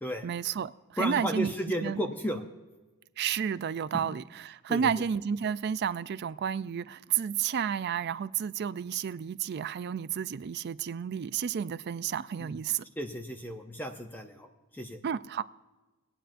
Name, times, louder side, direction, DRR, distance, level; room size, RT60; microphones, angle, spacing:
voice 1, 0.2-1.5 1.8-2.0 3.2-12.8 15.0-15.4, right 8 dB, 50° right, 15 dB, 0.3 m, -31 dB
voice 2, 1.0-2.4 4.7-4.9 12.4-12.6 13.0-14.5 14.7-15.0, equal, 10° left, 5 dB, 0.6 m, -33 dB
21.0 x 8.9 x 2.5 m, 1.2 s
head